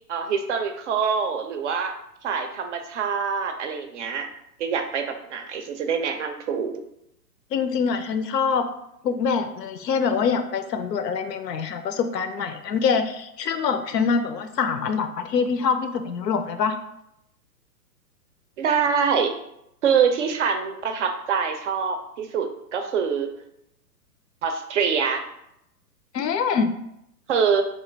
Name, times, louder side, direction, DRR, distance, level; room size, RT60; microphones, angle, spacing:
voice 1, 0.1-2.0 2.2-4.3 4.6-6.8 18.6-19.3 19.8-23.3 24.4-25.2 27.3-27.6, right 6 dB, 50° right, 6 dB, 0.5 m, -25 dB
voice 2, 7.5-8.7 9.0-16.8 26.1-26.7, left 5 dB, 85° left, 9 dB, 0.6 m, -24 dB
3.0 x 2.3 x 3.2 m, 0.79 s
hypercardioid pair, 120°, 48 cm